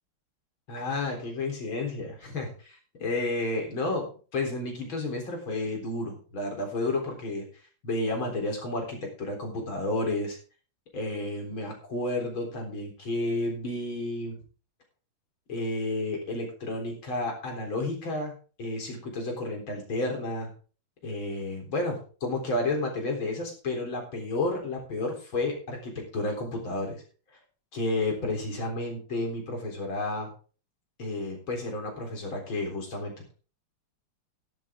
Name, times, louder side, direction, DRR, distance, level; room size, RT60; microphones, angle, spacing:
voice 1, 0.7-7.5 7.8-10.4 10.9-14.4 15.5-18.3 18.6-20.5 21.0-27.0 27.7-30.3 31.0-33.3, left 2 dB, 75° left, 1 dB, 4.7 m, -31 dB
13.5 x 11.5 x 3.7 m, 0.39 s
omnidirectional pair, 2.2 m